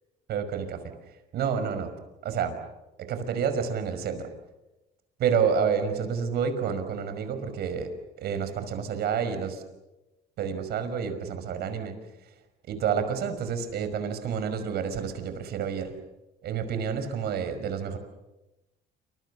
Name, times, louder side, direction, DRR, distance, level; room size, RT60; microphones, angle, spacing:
voice 1, 0.3-0.8 1.3-1.9 2.2-2.6 3.0-4.3 5.2-7.9 8.2-9.6 10.4-12.0 12.7-15.9 16.4-18.0, right 7 dB, 70° right, 9 dB, 5.6 m, -29 dB
28.5 x 26.0 x 7.1 m, 0.98 s
cardioid pair, 110°, 17 cm